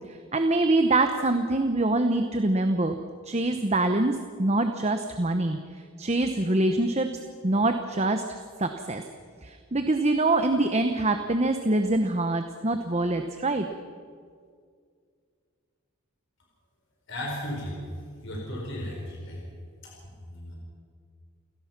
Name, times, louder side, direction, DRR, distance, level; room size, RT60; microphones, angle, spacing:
voice 1, 0.3-3.0 3.2-5.6 6.0-7.1 7.4-8.2 8.6-9.0 9.4-13.7, right 2 dB, 30° right, 6 dB, 0.9 m, -24 dB
voice 2, 17.1-17.8 18.2-19.4 19.8-20.6, left 1 dB, 55° left, -1 dB, 4.6 m, -35 dB
29.5 x 17.0 x 6.0 m, 2.1 s
head